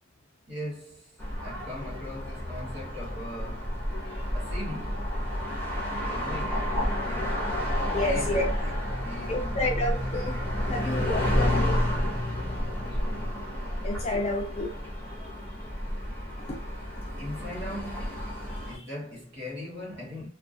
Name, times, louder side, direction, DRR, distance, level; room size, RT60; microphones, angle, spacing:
voice 1, 0.5-4.0 4.3-5.2 5.8-7.6 8.0-9.7 12.8-13.7 17.2-20.3, left 1 dB, 50° right, 1.3 m, -40 dB
sound 1, 1.2-18.8, equal, 10° left, 0.7 m, -30 dB
voice 2, 7.9-8.5 9.3-10.4 10.7-12.0 13.8-14.7 16.5-16.6, left 2 dB, 30° left, 0.4 m, -30 dB
2.3 x 2.2 x 2.5 m
head